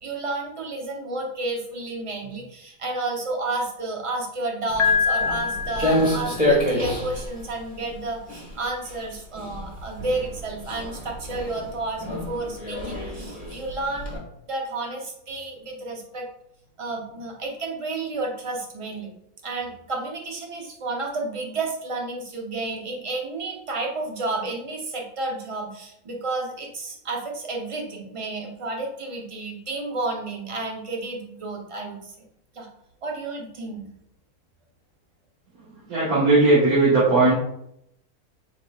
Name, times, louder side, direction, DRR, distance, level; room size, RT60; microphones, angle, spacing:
voice 1, 0.0-14.1 14.5-16.3 16.8-19.1 19.4-32.1 32.5-32.7 33.0-33.9, right 2 dB, 40° right, 0 dB, 0.4 m, -31 dB
Walk footsteps, 4.7-14.2, left 1 dB, 5° right, 1.1 m, -29 dB
Piano, 4.8-6.7, left 6 dB, 60° left, 0.8 m, -25 dB
voice 2, 35.9-37.3, right 2 dB, 80° right, -9 dB, 1.8 m, -17 dB
4.9 x 4.3 x 2.3 m, 0.76 s
omnidirectional pair, 1.6 m